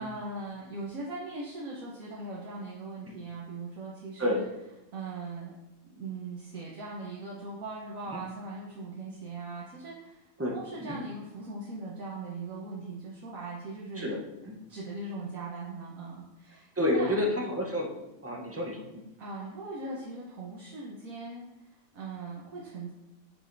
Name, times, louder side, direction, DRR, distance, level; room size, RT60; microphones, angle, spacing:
voice 1, 0.0-4.4 4.9-5.5 5.9-10.2 10.5-14.2 14.7-17.3 19.2-21.7 21.9-22.9, right 3 dB, 75° right, -5 dB, 1.4 m, -40 dB
voice 2, 10.4-11.0 14.0-14.2 14.5-14.6 16.8-17.9 18.2-18.8, left 1 dB, 15° right, 0 dB, 0.6 m, -29 dB
8.8 x 4.8 x 2.6 m, 0.95 s
omnidirectional pair, 1.4 m